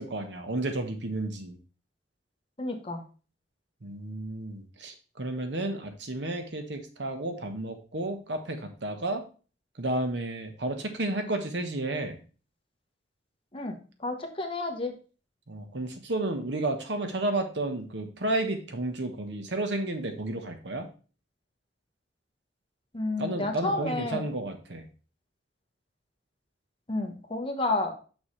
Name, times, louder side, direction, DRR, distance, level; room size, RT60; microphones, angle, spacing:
voice 1, 0.0-1.6 3.8-9.2 9.8-12.2 15.5-20.9 23.2-24.9, right 2 dB, 75° right, 6 dB, 1.1 m, -32 dB
voice 2, 2.6-3.0 13.5-15.0 22.9-24.3 26.9-27.9, left 2 dB, 30° left, 3 dB, 1.1 m, -31 dB
6.3 x 6.2 x 3.2 m, 0.36 s
head